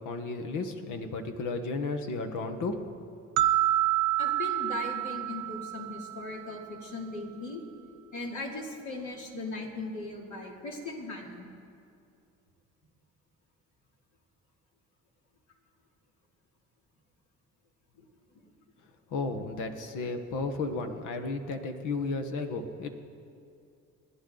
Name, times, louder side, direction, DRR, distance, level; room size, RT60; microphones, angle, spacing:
voice 1, 0.0-2.8 19.1-22.9, left 3 dB, 90° left, 6 dB, 1.4 m, -33 dB
sound 1, 3.4-6.5, right 14 dB, 80° right, 0.7 m, -28 dB
voice 2, 4.2-7.6 8.1-11.5, left 2 dB, 75° left, -1 dB, 3.0 m, -38 dB
29.0 x 10.0 x 3.9 m, 2.5 s
cardioid pair, 90°, 30 cm